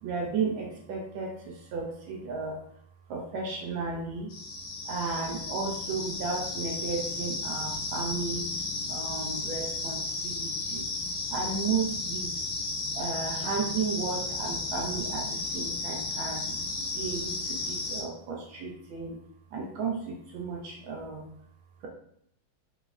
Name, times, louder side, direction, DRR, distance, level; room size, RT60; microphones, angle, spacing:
voice 1, 0.0-2.6 3.1-4.3 4.9-8.5 8.9-10.9 11.3-12.3 12.9-16.4 16.9-19.2 19.5-21.2, right 4 dB, 75° right, 0 dB, 1.3 m, -34 dB
sound 1, 4.3-18.0, left 2 dB, 80° left, 1.5 m, -34 dB
4.7 x 2.0 x 2.3 m, 0.69 s
omnidirectional pair, 2.3 m